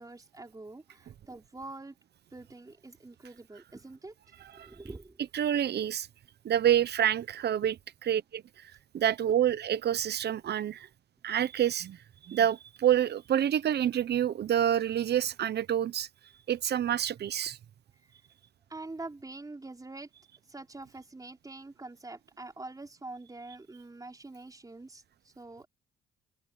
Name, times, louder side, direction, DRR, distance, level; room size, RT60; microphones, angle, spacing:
voice 1, 0.0-1.9 2.3-4.1 4.5-5.3 5.6-5.7 7.6-7.7 18.7-20.1 20.5-25.7, right 2 dB, 20° right, 4.7 m, -45 dB
voice 2, 5.3-6.1 6.4-7.8 8.0-10.9 11.2-12.0 12.2-16.1 16.5-17.6, right 10 dB, 55° right, 1.0 m, -27 dB
open air
cardioid pair, 90°, 20 cm